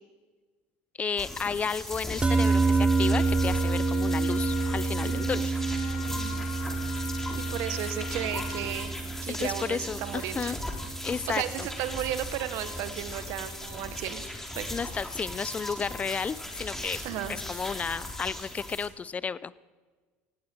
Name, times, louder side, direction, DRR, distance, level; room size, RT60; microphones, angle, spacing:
voice 1, 1.0-5.5 9.3-10.6 11.0-11.7 14.7-17.0 17.3-19.5, left 6 dB, 25° left, 19 dB, 0.7 m, -32 dB
sound 1, 1.2-18.9, left 1 dB, 5° left, 3.5 m, -38 dB
sound 2, 2.2-12.7, right 4 dB, 15° right, 0.8 m, -29 dB
Wind instrument woodwind instrument, 2.3-8.8, left 16 dB, 60° left, 0.8 m, -40 dB
voice 2, 5.0-6.4 7.5-10.5 11.3-14.2 14.5-14.8 17.0-17.4, right 12 dB, 70° right, 11 dB, 1.5 m, -35 dB
18.5 x 16.5 x 4.7 m, 1.4 s
supercardioid pair, 90°, 5 cm